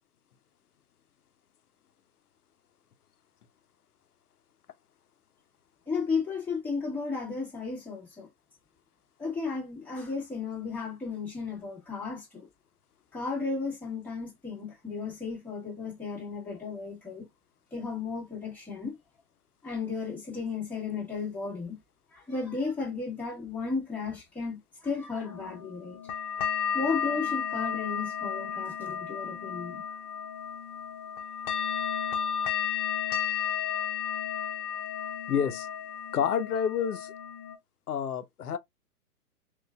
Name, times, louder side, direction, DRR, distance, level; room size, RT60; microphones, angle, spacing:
voice 1, 5.9-8.3 9.2-12.5 13.1-17.3 17.7-19.0 19.6-21.8 22.1-26.0 26.7-29.8, left 4 dB, 5° left, 1.3 m, -34 dB
sound 1, 25.2-37.6, left 8 dB, 35° left, 0.9 m, -33 dB
voice 2, 35.3-35.7 36.1-37.1 37.9-38.6, left 8 dB, 75° left, 0.7 m, -28 dB
3.8 x 2.5 x 2.3 m
figure-of-eight pair, 120°, 46 cm